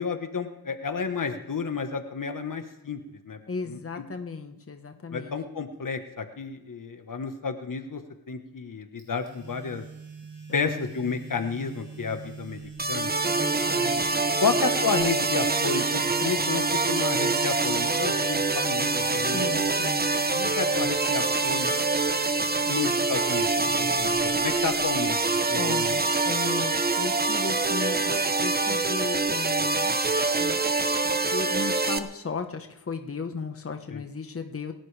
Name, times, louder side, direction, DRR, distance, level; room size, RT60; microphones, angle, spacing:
voice 1, 0.0-3.0 3.3-3.4 3.7-3.8 5.1-8.0 8.3-9.8 10.5-12.6 12.9-13.1 14.4-19.5 20.3-21.7 22.7-25.2 25.5-26.0 33.9-34.0, left 5 dB, 55° left, 7 dB, 1.3 m, -31 dB
voice 2, 3.5-5.3 10.5-11.1 13.3-14.3 19.2-20.1 22.6-22.7 23.0-23.4 25.6-30.6 31.3-34.7, left 4 dB, 35° left, 6 dB, 1.2 m, -36 dB
sound 1, 9.0-25.0, right 4 dB, 50° right, 6.0 m, -43 dB
sound 2, 12.8-32.0, right 3 dB, 25° right, 1.0 m, -25 dB
sound 3, 13.6-14.5 14.9-16.2 18.4-20.0 20.3-20.5 20.9-24.9 25.2-26.6, left 1 dB, 15° left, 7.4 m, -52 dB
28.0 x 12.0 x 3.4 m, 0.98 s
wide cardioid pair, 85°, 39 cm